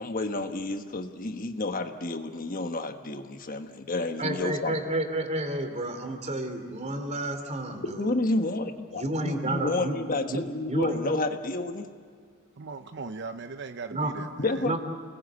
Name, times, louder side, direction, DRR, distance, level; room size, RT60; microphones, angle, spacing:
voice 1, 0.0-4.8 8.0-11.9 14.4-14.8, left 2 dB, 40° left, 7 dB, 1.3 m, -30 dB
voice 2, 4.2-8.2 8.9-10.0 10.3-11.1 13.9-14.1 14.6-14.8, right 1 dB, 35° right, 6 dB, 3.0 m, -31 dB
voice 3, 12.6-14.7, right 4 dB, 55° right, 9 dB, 0.7 m, -39 dB
29.5 x 20.0 x 8.2 m, 2.1 s
head